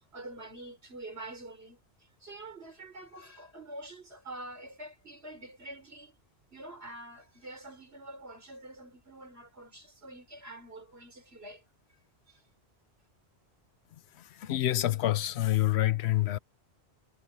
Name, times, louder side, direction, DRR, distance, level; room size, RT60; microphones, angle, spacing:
voice 1, 0.0-6.2 6.5-11.6 12.3-12.4, right 1 dB, 65° right, 4.7 m, -46 dB
voice 2, 14.4-16.4, left 14 dB, 75° left, 0.9 m, -27 dB
omnidirectional pair, 1.1 m